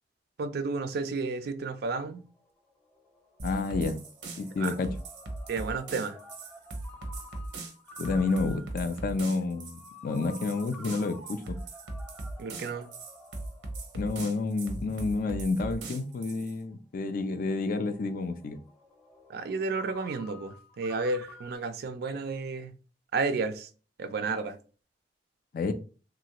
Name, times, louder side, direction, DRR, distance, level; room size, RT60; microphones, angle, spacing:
voice 1, 0.4-2.2 4.6-4.8 5.5-6.2 12.4-12.9 19.3-22.7 23.1-23.7 24.0-24.6, right 4 dB, 60° right, 0.3 m, -32 dB
Ringtone, 2.2-21.6, left 2 dB, 10° left, 0.7 m, -52 dB
voice 2, 3.4-4.0 4.4-4.9 8.0-11.6 13.9-18.6 25.5-25.7, left 3 dB, 50° left, 0.3 m, -30 dB
sound 1, 3.4-16.6, right 2 dB, 90° right, 0.7 m, -39 dB
3.0 x 2.4 x 2.8 m
head